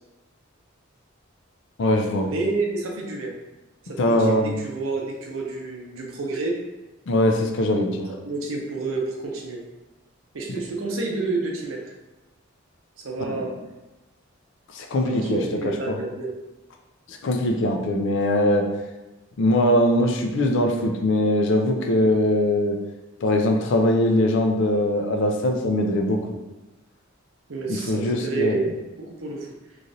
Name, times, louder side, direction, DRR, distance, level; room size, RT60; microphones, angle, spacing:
voice 1, 1.8-2.3 4.0-4.6 7.1-8.1 10.5-10.6 13.3-13.5 14.7-16.0 17.1-18.7 19.4-22.8 23.2-26.2 27.7-28.6, left 1 dB, 65° left, 3 dB, 0.4 m, -21 dB
voice 2, 2.3-3.3 3.8-6.5 8.2-9.6 10.3-11.8 13.0-13.5 15.0-16.3 27.5-28.7 29.0-29.5, right 3 dB, 85° right, 0 dB, 0.7 m, -29 dB
3.1 x 2.5 x 2.6 m, 1.1 s
head